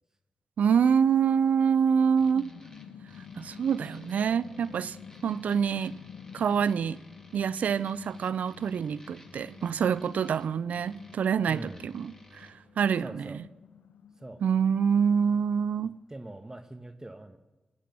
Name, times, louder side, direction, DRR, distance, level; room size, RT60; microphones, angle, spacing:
voice 1, 0.6-2.5 3.4-5.0 5.2-6.0 6.3-7.0 7.3-13.2 14.4-16.0, right 7 dB, 85° right, 0.4 m, -26 dB
sound 1, 1.9-16.1, left 7 dB, 90° left, 0.6 m, -50 dB
sound 2, 2.2-12.5, left 2 dB, 20° left, 2.8 m, -55 dB
voice 2, 11.5-11.9 13.0-13.4 14.2-14.4 14.9-15.0 16.1-17.4, right 1 dB, 20° right, 1.3 m, -43 dB
19.0 x 8.7 x 6.9 m
cardioid pair, 40°, 3 cm